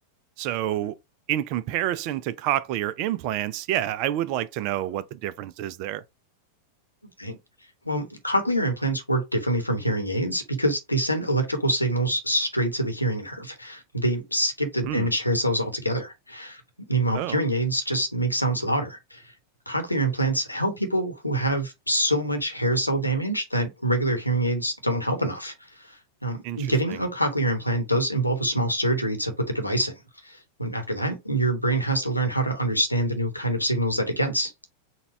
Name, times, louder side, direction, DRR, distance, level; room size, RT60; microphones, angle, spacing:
voice 1, 0.4-1.0 1.3-6.0 14.8-15.1 17.1-17.4 26.4-27.0, right 12 dB, 45° right, 0.4 m, -28 dB
voice 2, 7.8-16.6 16.9-19.2 19.7-29.9 30.2-34.5, right 1 dB, 85° left, 0.9 m, -25 dB
4.0 x 2.2 x 4.3 m
figure-of-eight pair, 90°, 0 cm